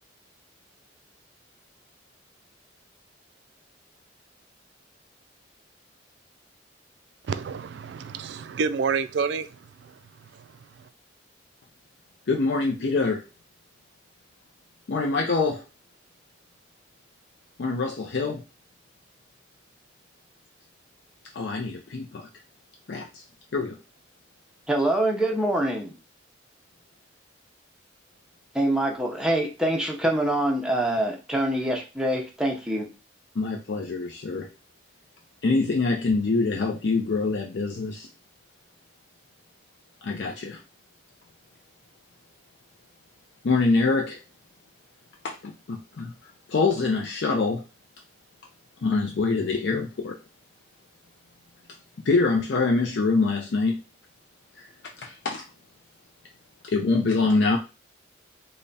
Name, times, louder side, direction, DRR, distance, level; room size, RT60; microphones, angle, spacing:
voice 1, 7.3-9.5, right 5 dB, 60° right, 0.3 m, -28 dB
voice 2, 12.3-13.2 14.9-15.6 17.6-18.4 21.3-22.3 22.9-23.2 23.5-23.8 33.4-34.5 35.4-38.1 40.0-40.6 43.4-44.2 45.2-46.1 46.5-47.6 48.8-50.2 52.0-53.8 54.6-54.7 55.0-55.4 56.6-57.6, left 3 dB, 60° left, 0.4 m, -25 dB
voice 3, 24.7-25.9 28.5-32.9, right 1 dB, 5° right, 0.6 m, -25 dB
3.4 x 2.2 x 3.9 m
head